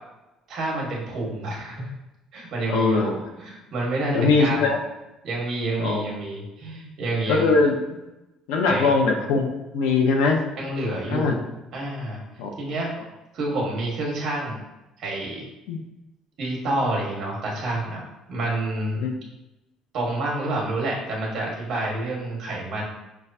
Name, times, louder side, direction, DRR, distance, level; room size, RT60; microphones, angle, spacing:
voice 1, 0.5-1.9 2.3-4.7 5.2-7.6 8.7-8.9 10.6-11.4 11.7-12.2 12.6-12.9 13.3-14.6 15.0-15.4 16.4-18.0 18.3-19.0 19.9-22.8, right 2 dB, 45° right, -3 dB, 1.4 m, -28 dB
voice 2, 2.7-3.1 4.1-4.8 5.8-6.0 7.3-8.0 8.5-9.5 9.7-10.4 11.1-11.3 12.4-12.5 15.7-15.8 19.0-19.1, left 4 dB, 90° left, 2 dB, 0.7 m, -21 dB
6.1 x 2.3 x 2.7 m, 0.97 s
cardioid pair, 155°, 0 cm